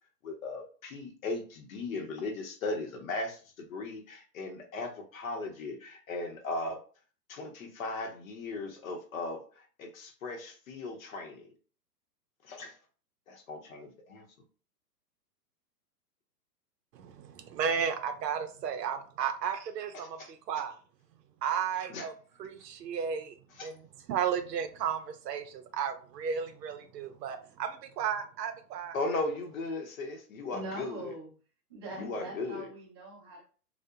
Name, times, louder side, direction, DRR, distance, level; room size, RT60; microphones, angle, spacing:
voice 1, 0.2-6.8 7.3-11.5 12.4-12.7 13.3-14.2 20.2-20.3 21.9-22.1 23.5-23.7 28.9-31.1 32.0-32.7, left 3 dB, 55° left, 3 dB, 0.7 m, -37 dB
voice 2, 16.9-20.8 21.4-22.1 22.4-23.4 23.6-23.8 24.1-29.0, right 7 dB, 90° right, 7 dB, 0.5 m, -33 dB
voice 3, 30.5-31.3 31.7-33.4, right 2 dB, 20° right, -9 dB, 0.3 m, -42 dB
2.7 x 2.1 x 2.3 m, 0.40 s
hypercardioid pair, 145°, 48 cm